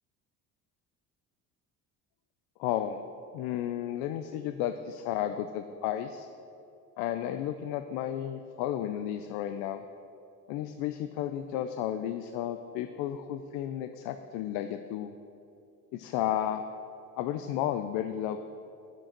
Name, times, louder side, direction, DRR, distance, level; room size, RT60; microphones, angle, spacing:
voice 1, 2.6-3.0 3.3-6.3 7.0-9.8 10.5-15.1 15.9-16.6 17.2-18.4, left 11 dB, 85° left, 9 dB, 0.5 m, -33 dB
8.9 x 7.6 x 5.9 m, 2.7 s
supercardioid pair, 95°, 36 cm